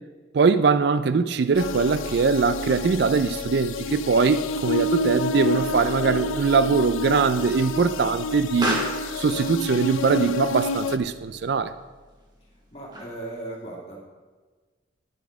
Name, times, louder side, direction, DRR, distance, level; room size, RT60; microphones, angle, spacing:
voice 1, 0.3-8.8 9.2-11.7, right 5 dB, 55° right, 13 dB, 0.4 m, -22 dB
sound 1, 1.5-11.9, equal, 55° left, 1.5 m, -41 dB
sound 2, 1.6-11.0, left 2 dB, 85° left, 0.5 m, -29 dB
Explosion, 8.2-13.4, right 1 dB, 20° right, 1.4 m, -37 dB
voice 2, 12.7-14.0, right 2 dB, 30° left, -3 dB, 2.2 m, -37 dB
10.0 x 7.0 x 4.9 m, 1.4 s
head